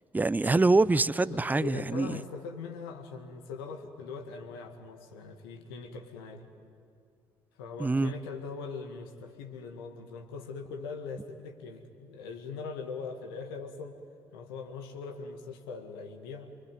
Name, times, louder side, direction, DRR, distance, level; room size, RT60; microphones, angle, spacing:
voice 1, 0.1-2.2 7.8-8.1, right 3 dB, 15° right, 0.6 m, -25 dB
voice 2, 1.3-6.5 7.6-14.0 14.3-16.5, left 5 dB, 75° left, 2.0 m, -41 dB
25.5 x 23.5 x 9.4 m
figure-of-eight pair, 45°, 12 cm